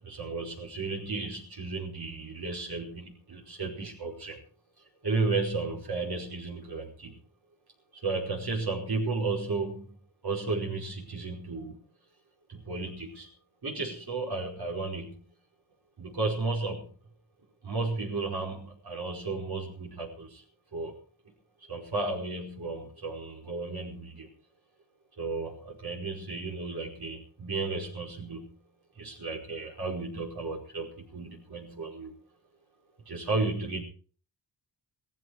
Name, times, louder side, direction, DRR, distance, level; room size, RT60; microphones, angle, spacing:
voice 1, 0.0-4.4 5.0-7.2 8.0-10.0 10.2-11.8 12.5-13.3 13.6-15.1 16.0-16.9 17.6-20.4 20.7-21.0 21.6-24.3 25.2-28.5 28.9-32.1 33.0-33.8, right 3 dB, 50° right, -2 dB, 5.1 m, -33 dB
17.5 x 15.0 x 4.9 m, 0.43 s
wide cardioid pair, 110°, 47 cm